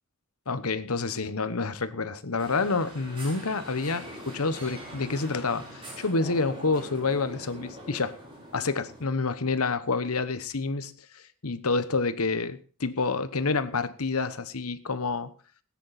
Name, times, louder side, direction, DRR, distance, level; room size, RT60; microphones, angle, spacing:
voice 1, 0.5-8.2 8.5-15.3, left 4 dB, 80° left, 13 dB, 1.2 m, -28 dB
sound 1, 2.4-9.0, equal, 25° right, 5.3 m, -43 dB
18.5 x 9.7 x 4.2 m, 0.40 s
head